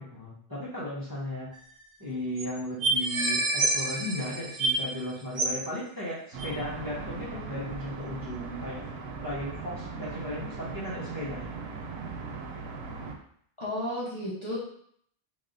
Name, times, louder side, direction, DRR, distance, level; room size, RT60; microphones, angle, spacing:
voice 1, 0.0-1.5 2.0-8.8 9.2-11.5, left 1 dB, 20° right, -8 dB, 1.1 m, -36 dB
sound 1, 1.5-1.6 1.8-1.9 2.4-2.5 2.8-5.0 5.4-5.6 6.4-6.5, right 2 dB, 50° right, 0.7 m, -28 dB
sound 2, 6.3-13.1, right 4 dB, 85° right, 0.9 m, -39 dB
voice 2, 13.6-14.6, left 1 dB, 30° left, -9 dB, 1.1 m, -33 dB
3.7 x 3.4 x 2.6 m, 0.64 s
omnidirectional pair, 1.0 m